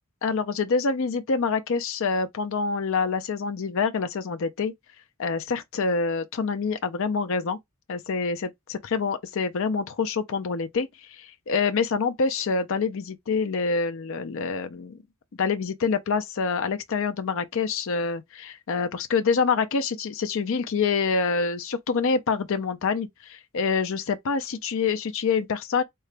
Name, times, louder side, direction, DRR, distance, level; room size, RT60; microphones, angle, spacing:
voice 1, 0.2-4.7 5.2-7.6 7.9-15.0 15.4-25.8, left 5 dB, 60° left, 0.5 m, -26 dB
3.7 x 2.3 x 3.2 m
head